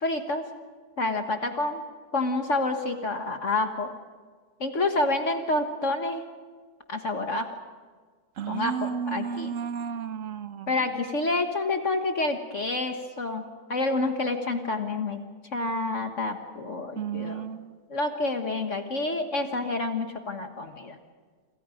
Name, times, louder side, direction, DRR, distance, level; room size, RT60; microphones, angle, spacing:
voice 1, 0.0-0.4 1.0-1.8 2.1-3.9 4.6-6.2 6.9-7.5 8.5-9.6 10.7-15.2 15.5-17.4 17.9-21.0, left 2 dB, 50° left, 5 dB, 1.7 m, -28 dB
voice 2, 8.4-10.7 17.0-17.8, right 7 dB, 55° right, 12 dB, 1.2 m, -33 dB
28.0 x 26.5 x 5.1 m, 1.5 s
omnidirectional pair, 1.8 m